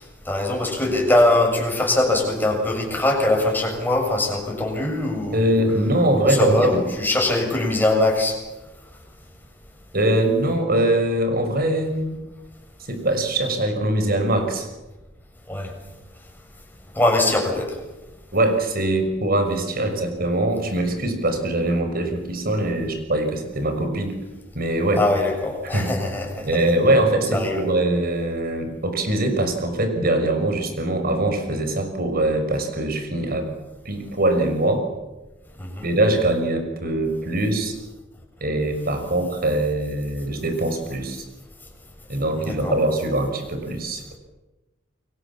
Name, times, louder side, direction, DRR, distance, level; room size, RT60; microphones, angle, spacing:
voice 1, 0.3-5.6 6.2-8.4 15.5-15.7 17.0-17.7 25.0-26.5 27.3-27.6 35.6-35.9 42.4-42.8, left 2 dB, 10° left, 1 dB, 7.2 m, -22 dB
voice 2, 5.3-6.6 9.9-12.2 12.9-14.7 18.3-24.1 24.5-25.0 25.7-25.9 26.4-33.5 33.8-34.8 35.8-37.7 38.4-41.2 42.1-44.2, right 1 dB, 50° right, 6 dB, 6.1 m, -22 dB
29.5 x 23.5 x 7.5 m, 1.1 s
head